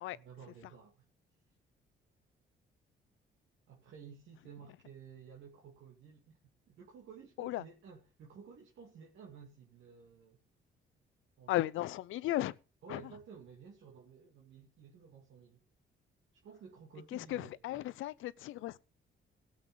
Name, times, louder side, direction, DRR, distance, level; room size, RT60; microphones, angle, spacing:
voice 1, 0.1-1.0 3.7-6.4 6.7-10.4 11.4-11.7 12.8-15.6 16.4-17.6, right 6 dB, 75° right, 2.4 m, -54 dB
voice 2, 11.5-12.6 12.9-13.1 17.1-18.8, left 15 dB, 85° left, 0.6 m, -35 dB
17.0 x 6.6 x 5.5 m
cardioid pair, 90°, 20 cm